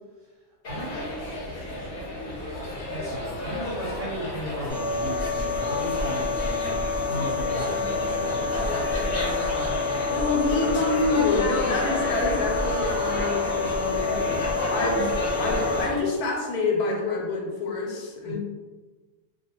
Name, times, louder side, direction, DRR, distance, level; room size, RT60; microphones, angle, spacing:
sound 1, 0.6-16.0, left 1 dB, 50° left, 0.7 m, -31 dB
voice 1, 0.7-1.3 1.7-2.0 2.9-9.7 18.3-18.4, equal, 70° right, -4 dB, 0.9 m, -36 dB
sound 2, 4.7-15.9, left 4 dB, 40° right, 0.3 m, -28 dB
voice 2, 10.1-14.4 14.7-18.4, left 3 dB, 85° left, -1 dB, 1.1 m, -27 dB
2.4 x 2.3 x 2.8 m, 1.3 s
omnidirectional pair, 1.6 m